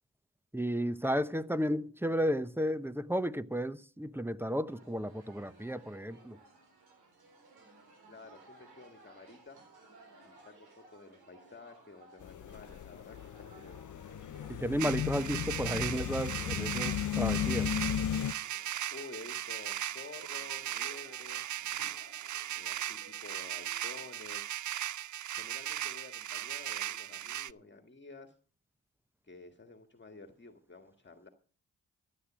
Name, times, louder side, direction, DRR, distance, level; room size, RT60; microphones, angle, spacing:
voice 1, 0.5-6.4 14.5-17.7, equal, 5° right, 0.9 m, -33 dB
sound 1, 4.7-24.1, right 3 dB, 80° right, 3.8 m, -59 dB
voice 2, 8.1-9.6 10.2-13.8 18.9-21.5 22.5-24.6 25.3-28.4 29.2-31.3, left 3 dB, 30° left, 1.7 m, -51 dB
sound 2, 12.2-18.3, left 10 dB, 55° left, 0.6 m, -35 dB
sound 3, 14.8-27.5, right 12 dB, 50° right, 0.5 m, -38 dB
14.0 x 8.3 x 6.1 m
supercardioid pair, 40°, 38 cm